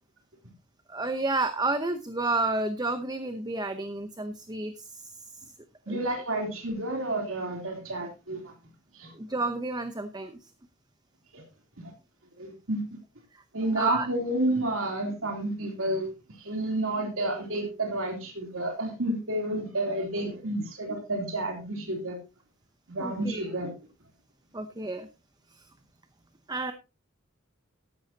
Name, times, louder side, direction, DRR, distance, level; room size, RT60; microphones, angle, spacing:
voice 1, 0.9-5.1 5.9-6.0 9.1-10.4 13.8-14.1 23.0-23.5 24.5-25.1 25.6-25.7 26.5-26.7, right 2 dB, 20° right, 9 dB, 0.8 m, -31 dB
voice 2, 5.9-8.5 8.9-9.1 11.3-11.4 11.8-11.9 12.4-12.8 13.5-16.1 16.4-22.2 22.9-23.7, right 1 dB, 70° right, 2 dB, 3.4 m, -30 dB
13.5 x 11.5 x 2.9 m, 0.28 s
head